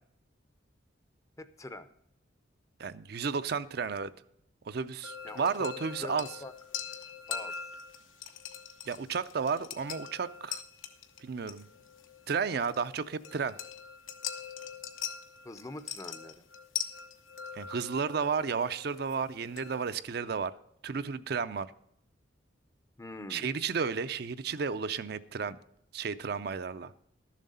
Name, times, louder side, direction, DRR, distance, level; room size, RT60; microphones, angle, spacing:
voice 1, 1.4-1.9 5.2-5.7 6.0-6.5 7.3-7.8 15.4-16.4 23.0-23.5, left 2 dB, 15° left, 12 dB, 0.5 m, -44 dB
voice 2, 2.8-4.1 4.7-6.3 8.9-10.6 11.2-11.7 12.3-13.6 17.5-20.5 20.8-21.7 23.3-25.6 25.9-26.9, right 5 dB, 50° right, 12 dB, 0.4 m, -32 dB
sound 1, 5.0-19.9, left 8 dB, 85° left, 1.1 m, -42 dB
12.5 x 7.4 x 5.5 m, 0.72 s
head